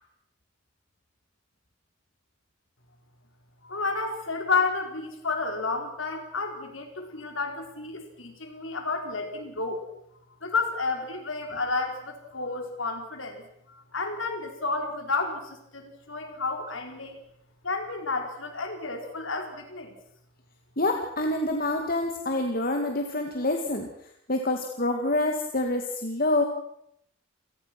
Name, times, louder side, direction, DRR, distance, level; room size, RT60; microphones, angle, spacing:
voice 1, 3.6-9.9 10.4-17.2 17.6-20.0, left 4 dB, 80° left, 4 dB, 4.7 m, -31 dB
voice 2, 20.8-23.9 24.3-26.4, left 2 dB, 45° left, 3 dB, 2.3 m, -27 dB
28.5 x 19.5 x 6.1 m, 0.75 s
head